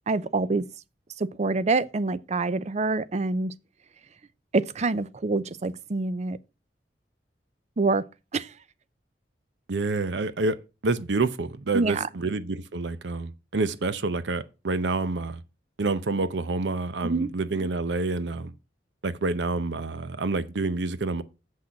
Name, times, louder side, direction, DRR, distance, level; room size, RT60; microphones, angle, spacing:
voice 1, 0.1-0.7 1.2-3.5 4.5-6.4 7.8-8.0 8.3-8.5 11.7-12.1 17.0-17.3, right 3 dB, 40° right, 0.5 m, -26 dB
voice 2, 9.7-15.4 15.8-18.5 19.0-21.2, right 3 dB, 80° right, 0.7 m, -28 dB
7.5 x 6.3 x 5.8 m
head